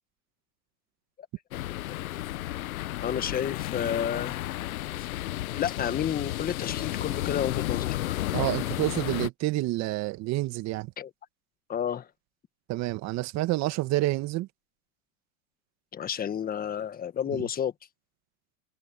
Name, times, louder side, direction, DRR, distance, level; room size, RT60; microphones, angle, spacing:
sound 1, 1.5-9.3, left 15 dB, 75° left, 1.0 m, -32 dB
voice 1, 3.0-4.4 5.0-5.1 5.5-8.1 11.0-11.1 11.7-12.1 15.9-17.7, left 9 dB, 20° left, 1.6 m, -31 dB
voice 2, 8.3-10.9 12.7-14.5 17.3-17.5, right 18 dB, 40° right, 1.9 m, -28 dB
hypercardioid pair, 120°, 43 cm